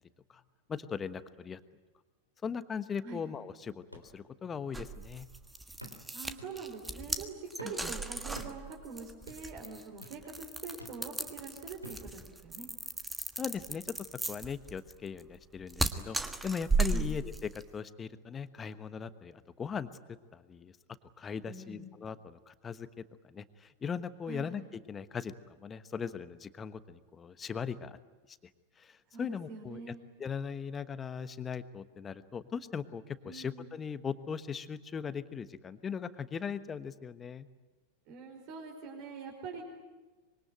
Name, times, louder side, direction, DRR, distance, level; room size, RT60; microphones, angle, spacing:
voice 1, 0.7-1.6 2.4-5.3 7.8-7.9 13.4-13.9 14.2-16.2 16.4-19.9 20.3-20.7 21.2-24.6 24.9-25.3 25.6-28.0 28.8-29.9 30.2-37.5, left 6 dB, 20° left, 13 dB, 1.2 m, -39 dB
sound 1, 3.9-4.1 4.6-4.7 5.8-6.1 6.4-6.6 7.6-7.9 8.4-8.6 9.3-9.5 10.0-10.2 10.8-11.0 11.8-12.1 12.8-12.9, equal, 90° right, 3.2 m, -48 dB
sound 2, 4.7-17.7, right 3 dB, 10° right, 1.5 m, -36 dB
voice 2, 6.1-12.7 16.9-17.1 21.5-21.8 24.3-24.5 29.1-30.0 33.2-33.7 38.1-39.6, right 4 dB, 45° right, 0 dB, 4.9 m, -44 dB
25.5 x 23.5 x 9.1 m, 1.2 s
figure-of-eight pair, 90°, 0 cm